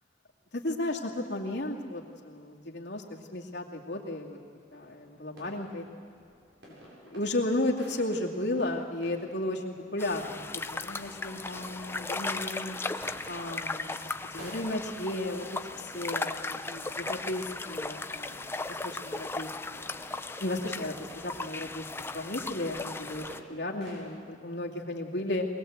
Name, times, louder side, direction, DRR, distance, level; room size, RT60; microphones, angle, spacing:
voice 1, 0.5-4.4 4.7-5.8 7.0-10.5 10.7-12.8 13.3-15.5 15.8-19.9 20.4-21.8 22.1-25.5, left 1 dB, 65° left, -1 dB, 2.5 m, -34 dB
sound 1, 4.7-24.1, equal, 70° right, 7.4 m, -53 dB
sound 2, 10.0-23.4, left 3 dB, 15° left, 0.5 m, -37 dB
23.0 x 20.0 x 8.1 m, 2.2 s
head